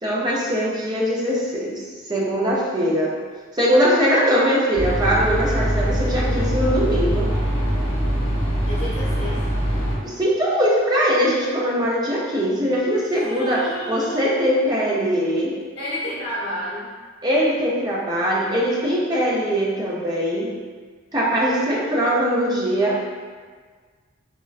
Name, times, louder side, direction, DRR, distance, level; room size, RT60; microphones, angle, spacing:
voice 1, 0.0-1.8 2.1-3.1 3.5-7.3 10.0-15.6 17.2-20.5 21.1-23.1, equal, 20° right, -5 dB, 0.4 m, -21 dB
sound 1, 4.7-10.0, equal, 10° left, 1.0 m, -22 dB
voice 2, 8.7-9.4 13.1-14.2 15.7-16.9, equal, 50° left, -12 dB, 0.7 m, -30 dB
3.7 x 2.1 x 2.4 m, 1.5 s
head